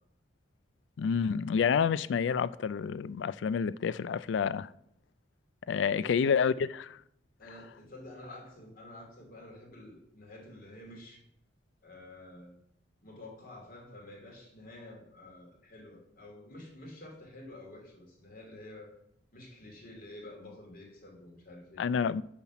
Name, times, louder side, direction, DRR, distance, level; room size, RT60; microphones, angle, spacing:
voice 1, 1.0-4.7 5.7-7.0 21.8-22.2, left 6 dB, 70° left, 0.3 m, -29 dB
voice 2, 7.4-11.2 11.8-12.6 13.0-19.0 19.3-21.9, left 1 dB, 50° left, 2.5 m, -49 dB
7.0 x 5.7 x 5.9 m
head